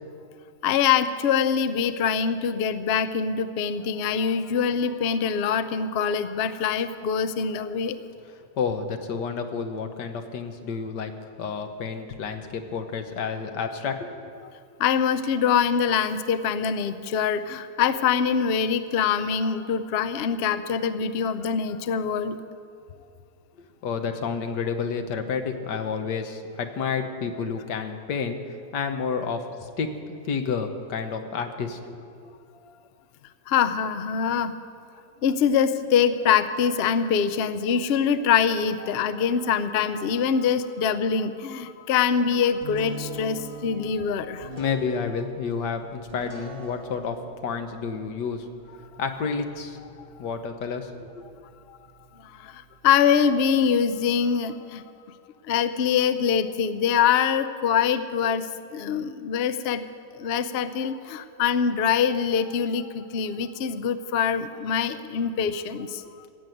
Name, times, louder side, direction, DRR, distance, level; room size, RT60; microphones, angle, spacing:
voice 1, 0.6-8.0 14.8-22.4 33.5-34.5 35.2-44.5 51.7-51.8 52.3-54.8 55.5-59.8 60.1-66.0, left 7 dB, 70° left, 12 dB, 0.6 m, -24 dB
voice 2, 8.3-11.1 11.4-14.5 23.6-29.9 30.2-32.3 44.6-48.5 49.0-49.8 50.2-51.4, left 5 dB, 85° left, 7 dB, 1.6 m, -30 dB
sound 1, 42.6-54.1, right 2 dB, 20° right, 2.4 m, -44 dB
15.5 x 8.0 x 9.1 m, 2.4 s
omnidirectional pair, 1.8 m